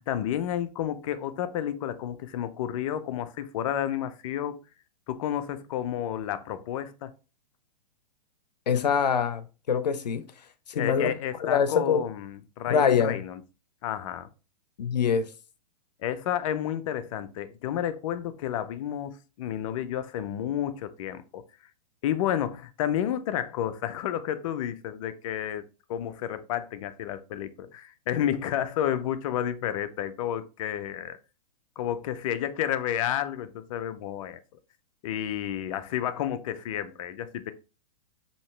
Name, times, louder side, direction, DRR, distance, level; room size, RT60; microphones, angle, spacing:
voice 1, 0.0-4.6 5.1-7.1 10.7-13.4 13.8-14.3 16.0-21.4 22.0-25.6 25.9-31.2 31.8-34.4 35.0-37.5, left 10 dB, 55° left, 0.6 m, -31 dB
voice 2, 8.7-10.2 10.7-11.1 11.4-12.0 12.7-13.2 14.8-15.3, left 7 dB, 90° left, 0.7 m, -24 dB
5.3 x 2.9 x 3.2 m
hypercardioid pair, 130°, 21 cm